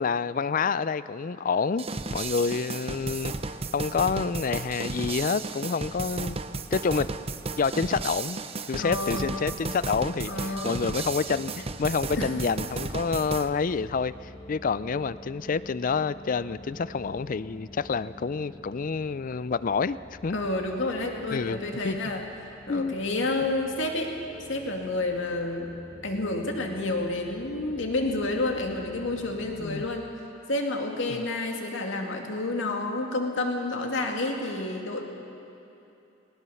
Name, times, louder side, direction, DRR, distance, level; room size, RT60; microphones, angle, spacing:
voice 1, 0.0-3.3 3.7-6.4 6.7-7.1 7.6-8.4 8.7-20.4 21.3-22.1 22.7-23.0 29.6-29.9 31.1-31.2, left 5 dB, 45° left, 17 dB, 0.4 m, -28 dB
sound 1, 1.8-13.5, right 3 dB, 30° right, 0.7 m, -34 dB
voice 2, 8.8-9.3 10.3-10.8 12.2-12.3 20.3-22.2 22.7-24.1 24.5-25.8 26.0-30.1 30.5-35.0, left 2 dB, 70° left, 2 dB, 2.3 m, -29 dB
sound 2, 10.9-29.9, left 1 dB, 25° left, 1.3 m, -48 dB
19.5 x 19.5 x 7.1 m, 2.8 s
head